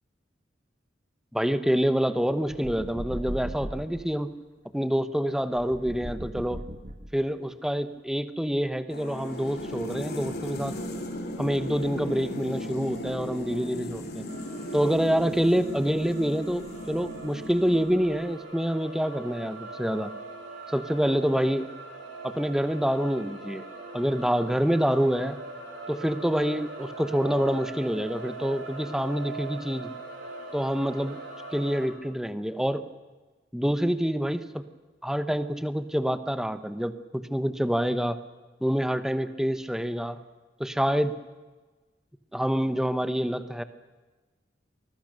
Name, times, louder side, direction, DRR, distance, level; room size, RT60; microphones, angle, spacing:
voice 1, 1.3-4.3 4.7-6.6 7.1-10.7 11.4-14.2 14.7-20.1 20.7-21.7 22.2-23.6 23.9-25.4 25.9-29.9 30.5-31.2 31.5-32.8 33.5-34.6 35.0-38.2 38.6-40.2 40.6-41.2 42.3-43.6, equal, 5° right, 11 dB, 1.0 m, -27 dB
sound 1, 2.5-4.0 5.5-7.4, equal, 45° right, 1.9 m, -37 dB
sound 2, 8.9-18.2, left 1 dB, 60° left, 3.8 m, -37 dB
sound 3, 14.3-31.9, right 3 dB, 85° right, 5.7 m, -42 dB
24.5 x 21.0 x 6.7 m, 1.2 s
head